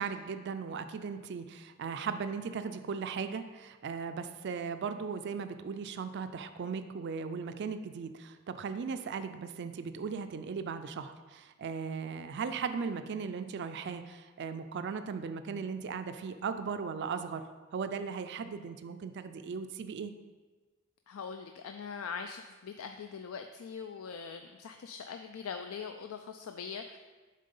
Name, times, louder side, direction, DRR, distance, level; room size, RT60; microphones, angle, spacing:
voice 1, 0.0-17.5 17.7-20.1, right 5 dB, 55° right, 10 dB, 0.4 m, -37 dB
voice 2, 21.1-27.0, left 6 dB, 80° left, 6 dB, 0.4 m, -42 dB
7.5 x 3.8 x 5.4 m, 1.3 s
head